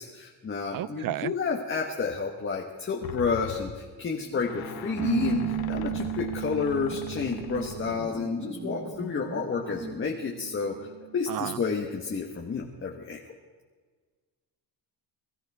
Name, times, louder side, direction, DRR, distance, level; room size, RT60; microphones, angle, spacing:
voice 1, 0.0-10.9 11.1-13.2, left 5 dB, 30° left, 0 dB, 1.5 m, -30 dB
voice 2, 0.7-1.3 11.3-11.6, right 13 dB, 60° right, 20 dB, 0.5 m, -32 dB
sound 1, 3.0-8.3 8.9-9.0, left 10 dB, 65° left, 1.1 m, -41 dB
sound 2, 3.8-6.2 6.8-10.1, right 2 dB, 15° right, 1.9 m, -41 dB
Bass guitar, 5.0-11.2, right 14 dB, 40° right, 1.2 m, -36 dB
24.0 x 14.0 x 3.7 m, 1.5 s
cardioid pair, 130°, 40 cm